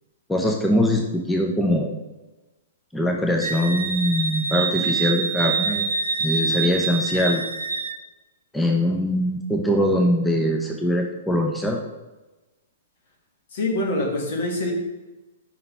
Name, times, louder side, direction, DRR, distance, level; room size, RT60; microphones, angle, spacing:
voice 1, 0.3-1.9 2.9-5.9 6.2-7.4 8.5-11.8, equal, 5° left, 1 dB, 0.6 m, -22 dB
Wind instrument woodwind instrument, 3.4-8.0, right 4 dB, 75° right, 0.5 m, -26 dB
voice 2, 13.5-14.7, left 2 dB, 55° left, 0 dB, 1.6 m, -25 dB
5.5 x 3.9 x 4.6 m, 1.1 s
figure-of-eight pair, 115°, 0 cm